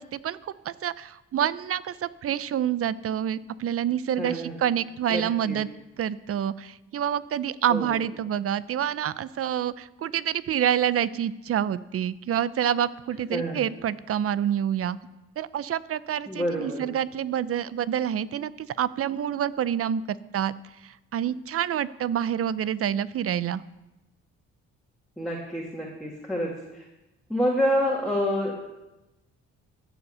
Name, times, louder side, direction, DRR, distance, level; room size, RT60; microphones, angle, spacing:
voice 1, 0.0-5.7 6.0-15.0 15.4-20.5 20.8-23.6, right 9 dB, 50° right, 17 dB, 0.6 m, -27 dB
voice 2, 4.2-4.6 5.1-5.6 7.7-8.0 13.3-13.6 16.3-16.9 25.2-26.8 27.3-28.5, equal, ahead, -4 dB, 2.3 m, -28 dB
14.5 x 7.1 x 6.8 m, 1.0 s
cardioid pair, 90°, 30 cm